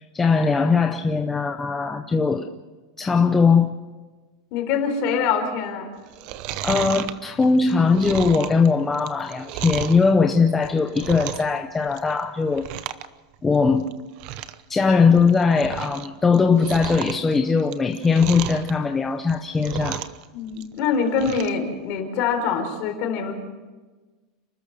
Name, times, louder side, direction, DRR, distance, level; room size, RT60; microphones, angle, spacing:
voice 1, 0.0-2.5 3.0-3.7 6.6-12.7 13.4-13.9 14.7-20.0, left 4 dB, 10° left, 5 dB, 0.7 m, -20 dB
voice 2, 4.5-5.9 20.3-23.3, left 6 dB, 35° left, 5 dB, 4.1 m, -24 dB
Chewing mastication, 6.1-10.0 10.5-11.6 11.8-12.2 12.5-13.1 13.3-13.4 13.9-14.0 14.2-14.6 15.0-16.1 16.3-18.7 19.2-20.2 20.5-21.6 22.0-22.1, right 12 dB, 35° right, 0.8 m, -33 dB
30.0 x 13.5 x 6.6 m, 1.3 s
supercardioid pair, 180°, 2 cm